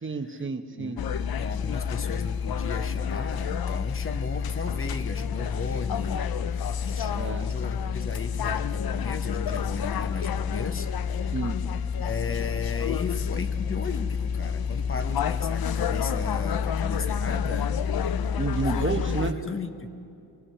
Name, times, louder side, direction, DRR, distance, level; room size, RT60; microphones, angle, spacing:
voice 1, 0.0-1.0 7.2-7.5 11.3-11.6 18.4-19.4, right 4 dB, 35° right, 7 dB, 1.1 m, -30 dB
voice 2, 0.8-6.2 6.5-10.9 12.0-17.7 18.7-19.9, left 4 dB, 35° left, 9 dB, 1.0 m, -36 dB
sound 1, 1.0-19.3, left 7 dB, 75° left, 0.6 m, -29 dB
23.0 x 20.5 x 5.6 m, 2.6 s
wide cardioid pair, 115°, 37 cm